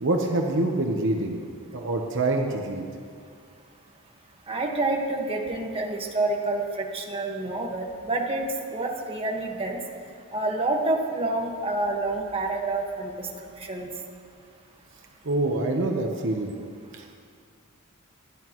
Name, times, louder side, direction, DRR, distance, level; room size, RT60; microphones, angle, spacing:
voice 1, 0.0-1.4 1.7-2.8 15.2-16.5 17.0-17.2, right 2 dB, 60° right, 2 dB, 1.1 m, -26 dB
voice 2, 4.5-8.4 8.7-9.8 10.3-13.3 13.7-13.9, right 2 dB, 25° right, 0 dB, 1.5 m, -28 dB
26.5 x 11.5 x 3.1 m, 2.3 s
head